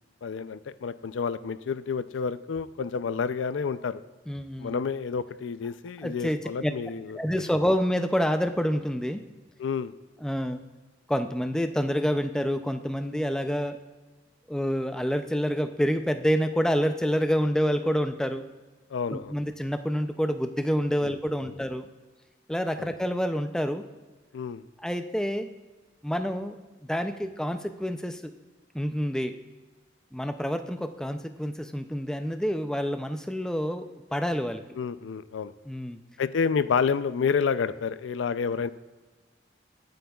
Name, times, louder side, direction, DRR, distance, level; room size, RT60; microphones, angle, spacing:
voice 1, 0.2-4.0 4.6-7.2 9.6-9.9 18.9-19.4 21.0-21.1 21.5-21.6 22.8-22.9 24.3-24.6 34.8-35.5 36.2-38.7, left 6 dB, 80° left, 14 dB, 0.4 m, -29 dB
voice 2, 4.3-4.8 6.0-6.7 7.1-9.2 10.2-10.6 11.1-13.8 14.5-18.4 19.1-21.9 22.5-23.8 24.8-25.5 26.0-26.5 26.9-28.3 28.7-29.4 30.1-34.6 35.7-36.0, equal, 5° left, 8 dB, 0.4 m, -28 dB
21.5 x 7.8 x 2.3 m, 1.3 s
head